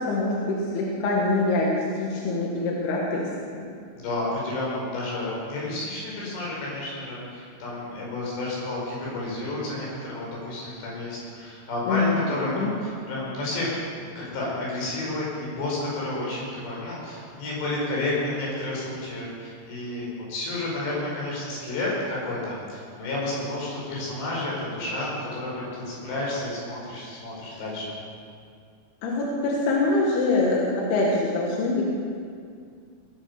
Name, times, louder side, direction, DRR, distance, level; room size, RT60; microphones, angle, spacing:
voice 1, 0.0-3.3 3.5-3.7 11.9-12.7 29.0-31.9, left 2 dB, 70° left, -3 dB, 3.6 m, -24 dB
voice 2, 4.0-27.9, left 2 dB, 90° left, -5 dB, 7.2 m, -31 dB
20.0 x 9.5 x 6.9 m, 2.2 s
omnidirectional pair, 4.8 m